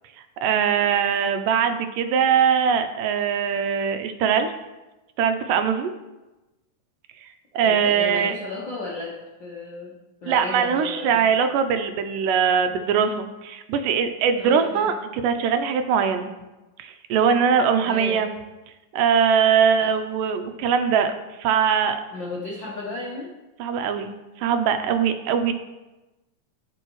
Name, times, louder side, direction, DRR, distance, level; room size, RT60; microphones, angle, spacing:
voice 1, 0.4-4.5 5.2-5.9 7.5-8.3 10.3-16.3 16.8-18.3 18.9-21.1 21.4-22.0 23.6-25.5, right 7 dB, 80° right, 8 dB, 2.2 m, -21 dB
voice 2, 7.6-9.9 10.2-11.2 14.4-14.9 17.8-18.2 19.8-19.9 22.1-23.3, left 3 dB, 70° left, -4 dB, 1.1 m, -34 dB
14.5 x 4.9 x 3.1 m, 1.1 s
omnidirectional pair, 3.9 m